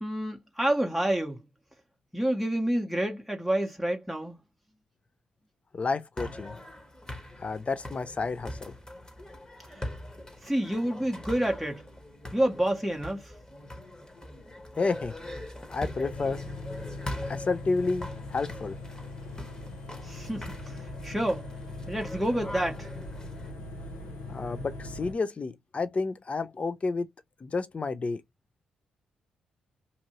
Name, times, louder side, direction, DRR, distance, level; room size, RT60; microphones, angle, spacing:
voice 1, 0.0-1.4 2.1-4.4 9.7-9.8 10.4-11.9 12.3-13.3 20.0-21.5 21.9-22.9, right 1 dB, ahead, 0.9 m, -28 dB
voice 2, 5.7-6.5 7.4-8.7 14.8-15.1 15.7-16.4 17.2-18.8 24.3-27.1 27.4-28.2, left 4 dB, 40° left, 0.5 m, -30 dB
sound 1, 6.2-23.5, left 1 dB, 20° left, 1.2 m, -42 dB
sound 2, 16.1-25.1, left 2 dB, 80° left, 0.9 m, -41 dB
2.7 x 2.6 x 2.9 m
hypercardioid pair, 40°, 3 cm